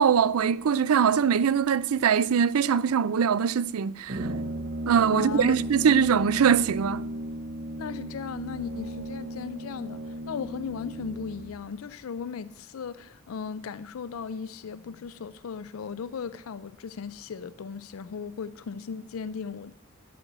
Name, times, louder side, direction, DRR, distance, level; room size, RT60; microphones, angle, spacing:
voice 1, 0.0-4.3 4.9-7.0, right 7 dB, 85° right, 0.4 m, -22 dB
Brass instrument, 4.1-11.6, right 1 dB, 55° right, 0.9 m, -35 dB
voice 2, 5.1-5.6 7.8-19.7, left 6 dB, 70° left, 0.4 m, -37 dB
10.0 x 6.1 x 7.9 m
head